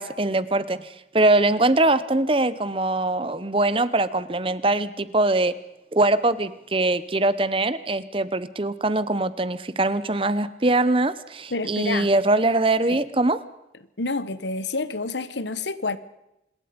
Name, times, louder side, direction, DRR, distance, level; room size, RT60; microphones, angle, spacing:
voice 1, 0.0-5.5 5.9-13.4, right 2 dB, 30° right, 0.9 m, -22 dB
voice 2, 11.5-12.1 12.9-13.0 14.0-16.0, left 3 dB, 85° left, 1.3 m, -28 dB
26.0 x 21.5 x 5.2 m
head